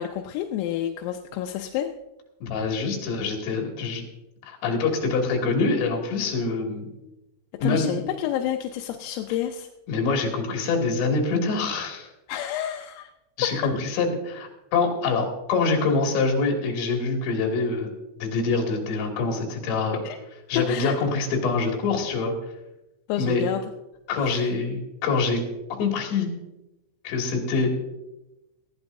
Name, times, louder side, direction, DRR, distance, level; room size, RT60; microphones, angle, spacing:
voice 1, 0.0-1.9 7.6-9.7 12.3-13.1 13.4-13.5 20.0-20.2 20.6-21.0 23.1-23.7 24.2-24.5, left 11 dB, 85° left, 4 dB, 3.3 m, -29 dB
voice 2, 2.4-4.0 4.5-6.9 7.6-7.9 9.9-12.1 13.4-17.9 18.2-20.0 20.5-22.3 23.2-23.4 24.1-25.4 25.8-26.3 27.0-27.7, left 4 dB, 65° left, 1 dB, 4.4 m, -25 dB
19.5 x 15.0 x 2.6 m, 0.97 s
omnidirectional pair, 5.9 m